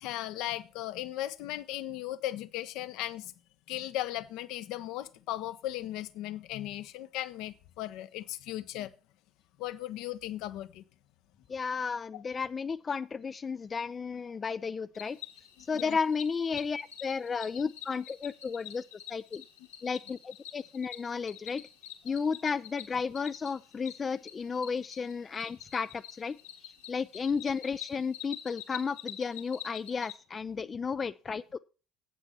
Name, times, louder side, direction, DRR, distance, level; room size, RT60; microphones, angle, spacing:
voice 1, 0.0-3.3 3.7-8.9 9.6-10.8 12.1-12.2 15.7-16.0 30.6-30.7, left 14 dB, 60° left, 0.7 m, -37 dB
voice 2, 11.5-15.2 15.6-18.8 19.1-19.4 19.8-21.6 22.0-26.4 26.9-31.6, left 5 dB, 30° left, 0.4 m, -33 dB
Cricket, 14.9-30.1, left 11 dB, 80° left, 2.2 m, -47 dB
9.2 x 8.1 x 5.5 m
figure-of-eight pair, 60°, 0 cm